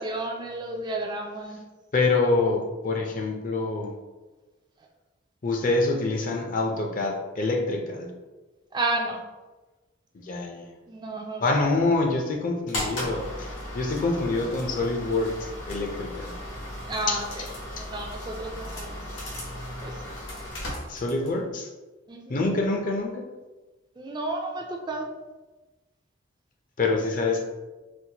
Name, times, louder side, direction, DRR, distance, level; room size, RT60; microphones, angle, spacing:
voice 1, 0.0-1.6 8.7-9.2 10.9-11.5 16.9-17.4 17.7-20.1 22.1-22.4 24.0-25.1, right 2 dB, 25° right, 2 dB, 0.3 m, -32 dB
voice 2, 1.9-3.9 5.4-8.1 10.1-10.7 11.4-16.3 17.1-17.2 17.8-17.9 20.9-21.7 22.3-23.2 26.8-27.4, left 3 dB, 45° left, 1 dB, 0.5 m, -26 dB
sound 1, 12.7-21.4, left 1 dB, 75° left, 1.0 m, -36 dB
4.4 x 2.1 x 2.8 m, 1.2 s
head